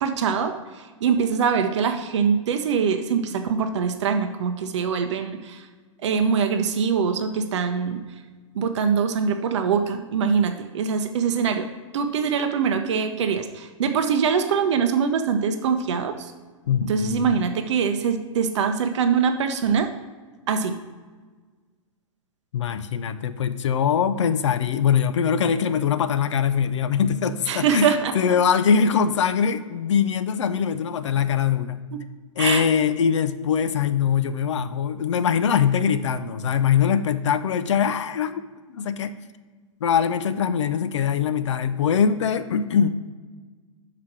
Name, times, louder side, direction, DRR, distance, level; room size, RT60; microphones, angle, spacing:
voice 1, 0.0-5.7 6.0-8.0 8.5-11.7 11.9-16.3 16.9-19.9 20.5-20.8 27.5-28.1 31.9-32.0 32.4-32.7, right 6 dB, 60° right, 7 dB, 0.6 m, -23 dB
voice 2, 16.7-17.4 22.5-31.8 32.4-38.4 38.7-39.1 39.8-42.9, left 7 dB, 65° left, 11 dB, 0.4 m, -22 dB
5.8 x 4.9 x 5.9 m, 1.4 s
figure-of-eight pair, 110°, 17 cm